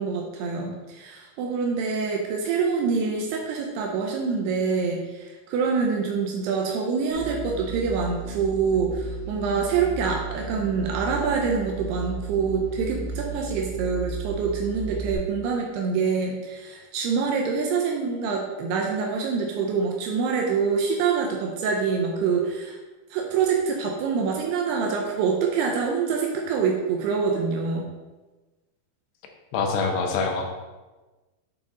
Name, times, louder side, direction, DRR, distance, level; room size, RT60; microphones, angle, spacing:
voice 1, 0.0-22.8 23.1-27.9, right 5 dB, 85° right, 0 dB, 2.7 m, -26 dB
sound 1, 7.1-15.1, right 4 dB, 25° right, 1.6 m, -35 dB
voice 2, 29.5-30.5, left 4 dB, 80° left, 3 dB, 2.8 m, -25 dB
7.9 x 3.9 x 3.8 m, 1.2 s
omnidirectional pair, 4.6 m